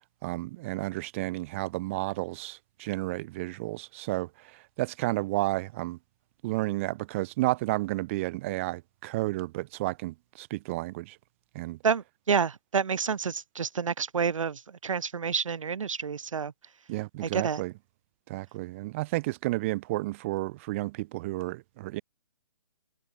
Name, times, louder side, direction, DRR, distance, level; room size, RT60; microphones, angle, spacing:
voice 1, 0.2-6.0 6.4-11.2 11.5-11.8 16.9-17.7 18.3-22.0, right 19 dB, 20° right, 4.7 m, -32 dB
voice 2, 11.8-16.5 17.2-17.6, right 6 dB, 60° right, 5.3 m, -29 dB
hypercardioid pair, 170°, 18 cm